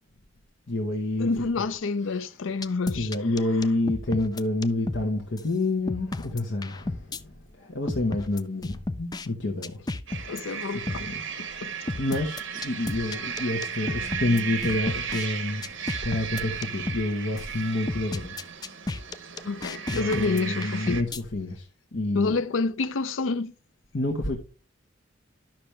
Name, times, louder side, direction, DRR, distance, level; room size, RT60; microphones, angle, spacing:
voice 1, 0.7-1.5 2.0-2.3 2.9-9.9 10.9-11.1 11.9-18.5 19.9-22.3 23.9-24.4, left 2 dB, 70° left, 1.2 m, -28 dB
voice 2, 1.2-3.1 10.3-11.0 11.4-11.7 19.4-21.0 22.1-23.5, left 4 dB, 90° left, 0.5 m, -28 dB
sound 1, 2.6-5.1 5.4-5.5 5.9-7.2 7.9-9.3 9.6-10.4 10.9-11.1 11.9-15.3 15.6-17.1 17.4-17.5 17.9-21.2, left 2 dB, 20° left, 0.4 m, -33 dB
sound 2, 10.1-21.0, right 7 dB, 75° right, 1.2 m, -35 dB
12.0 x 6.0 x 3.3 m
head